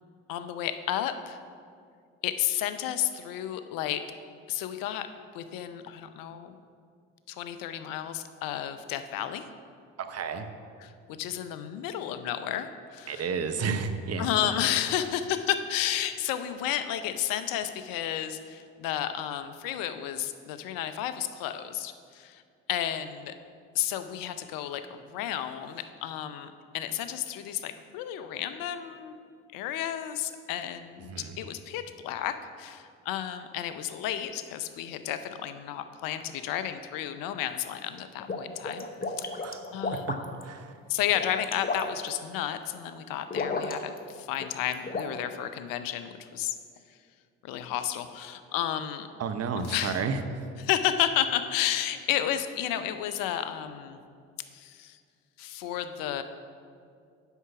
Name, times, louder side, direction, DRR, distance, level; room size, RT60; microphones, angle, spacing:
voice 1, 0.3-1.4 2.2-4.0 4.5-5.1 5.3-6.6 7.3-9.4 10.8-13.3 14.2-22.4 22.7-23.3 23.7-29.2 29.5-38.9 39.2-39.5 39.7-40.4 40.9-46.6 47.4-49.1 49.6-50.0 50.6-54.0 54.5-55.0 55.4-56.2, left 11 dB, 70° left, 10 dB, 0.7 m, -32 dB
voice 2, 10.0-10.5 13.1-14.3 31.1-31.4 39.4-39.6 40.1-40.2 40.4-40.7 49.2-50.2, right 5 dB, 45° right, 8 dB, 0.9 m, -31 dB
sound 1, 38.0-40.4 41.0-42.1 43.3-44.1 44.3-45.1, left 3 dB, 25° left, 0.9 m, -33 dB
8.2 x 5.6 x 5.9 m, 2.3 s
hypercardioid pair, 55°, 35 cm